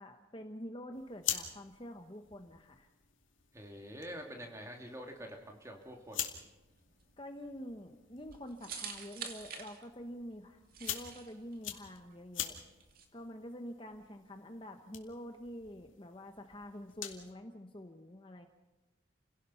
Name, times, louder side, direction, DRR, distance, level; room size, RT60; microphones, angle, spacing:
voice 1, 0.0-2.9 7.2-12.6 13.1-18.5, equal, 25° left, 5 dB, 1.0 m, -47 dB
sound 1, 0.9-17.3, left 10 dB, 85° left, 2.5 m, -46 dB
voice 2, 3.5-6.3, equal, 15° right, 2 dB, 2.8 m, -46 dB
sound 2, 6.5-13.0, right 6 dB, 45° right, 2.3 m, -48 dB
30.0 x 17.0 x 5.7 m, 1.1 s
head